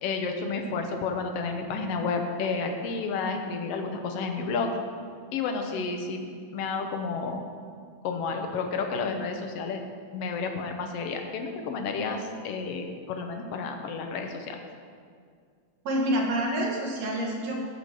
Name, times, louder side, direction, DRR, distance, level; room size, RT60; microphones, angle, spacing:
voice 1, 0.0-4.7 5.3-7.4 8.0-9.8 10.1-14.6, left 4 dB, 65° left, 4 dB, 1.8 m, -31 dB
voice 2, 15.8-17.6, right 1 dB, 65° right, -1 dB, 2.6 m, -27 dB
14.5 x 5.0 x 6.4 m, 2.1 s
omnidirectional pair, 3.3 m